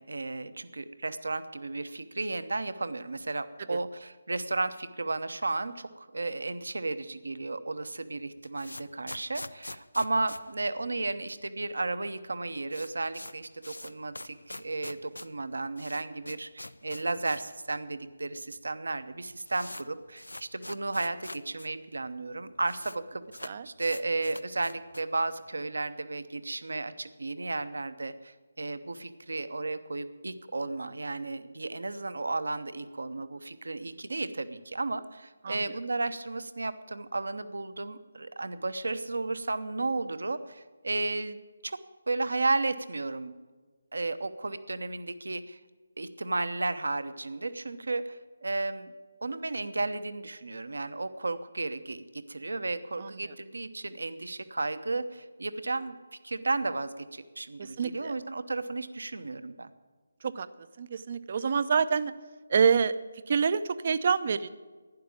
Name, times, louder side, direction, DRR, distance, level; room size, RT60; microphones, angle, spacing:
voice 1, 0.0-41.8 42.1-43.3 43.9-45.6 46.0-48.9 49.2-59.7, right 3 dB, 65° right, 12 dB, 0.9 m, -33 dB
sound 1, 8.2-11.4 11.7-11.8 12.0-12.1 12.4-17.6 17.9-18.0 18.7-18.8 19.0-21.7 22.0-22.1 22.2-23.0 23.3-25.2, left 1 dB, 80° left, 0.6 m, -44 dB
voice 2, 53.0-53.3 57.6-58.2 60.2-60.5 60.8-62.1 62.5-62.9 63.3-64.5, right 6 dB, 40° right, 14 dB, 0.6 m, -27 dB
11.5 x 10.0 x 8.6 m, 1.4 s
figure-of-eight pair, 150°, 0 cm